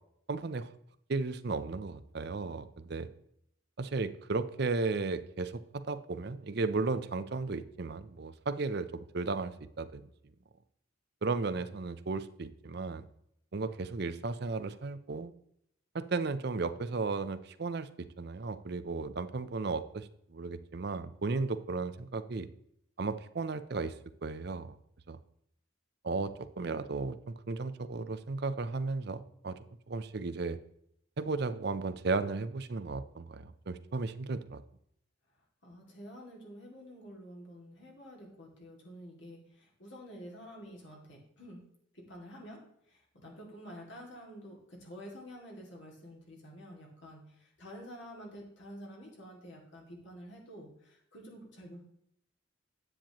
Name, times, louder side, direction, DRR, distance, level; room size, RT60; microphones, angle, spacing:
voice 1, 0.3-0.7 1.1-3.1 3.8-10.0 11.2-13.1 13.5-15.3 15.9-22.5 23.0-23.9 24.2-24.8 25.1-25.2 26.0-29.6 29.9-30.6 31.2-34.6, right 3 dB, 55° right, 12 dB, 0.5 m, -35 dB
voice 2, 35.6-41.6 41.9-42.6 42.9-51.8, equal, 65° left, -2 dB, 2.3 m, -49 dB
10.0 x 8.7 x 3.0 m, 0.71 s
head